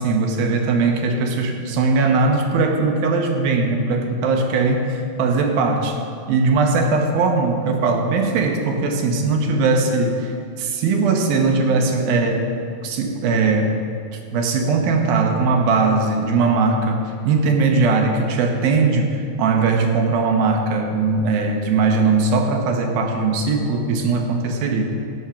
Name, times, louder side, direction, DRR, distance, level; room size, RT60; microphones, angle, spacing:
voice 1, 0.0-6.0 6.3-12.4 12.8-13.7 14.3-24.8, right 4 dB, 75° right, 3 dB, 2.9 m, -19 dB
18.0 x 6.5 x 5.7 m, 2.4 s
omnidirectional pair, 4.3 m